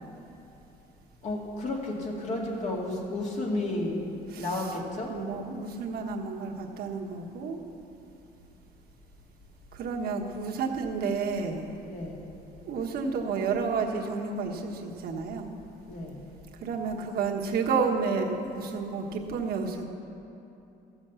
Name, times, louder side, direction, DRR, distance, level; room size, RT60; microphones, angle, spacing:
voice 1, 1.2-4.1 4.4-5.1 11.9-12.2 15.9-16.2, left 2 dB, 45° left, -1 dB, 2.4 m, -32 dB
voice 2, 4.3-4.8 5.1-7.6 9.7-11.7 12.6-15.5 16.6-19.9, right 5 dB, 65° right, 1 dB, 1.4 m, -31 dB
15.5 x 7.1 x 7.1 m, 2.8 s
cardioid pair, 110°, 17 cm